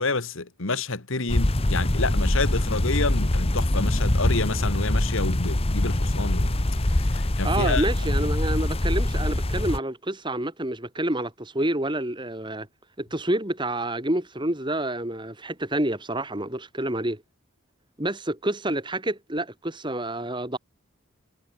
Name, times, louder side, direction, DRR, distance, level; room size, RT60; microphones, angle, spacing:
voice 1, 0.0-6.6 6.8-8.1, left 3 dB, 65° left, 1.8 m, -29 dB
sound 1, 1.3-9.8, left 1 dB, 25° left, 1.1 m, -24 dB
voice 2, 7.4-12.7 13.0-17.2 18.0-20.6, right 1 dB, 20° right, 2.3 m, -28 dB
head